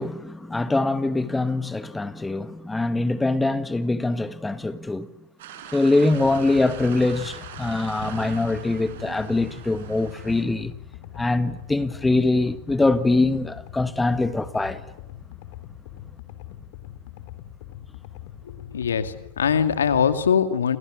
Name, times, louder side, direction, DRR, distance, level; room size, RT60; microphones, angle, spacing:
voice 1, 0.0-5.1 5.7-10.7 11.1-14.8, left 2 dB, 10° left, 1.7 m, -23 dB
sound 1, 5.4-10.4, right 8 dB, 65° right, 6.7 m, -41 dB
sound 2, 6.1-20.1, left 12 dB, 60° left, 3.6 m, -42 dB
voice 2, 18.4-20.8, left 7 dB, 80° left, 2.2 m, -22 dB
29.5 x 28.0 x 6.5 m
hypercardioid pair, 95°, 0 cm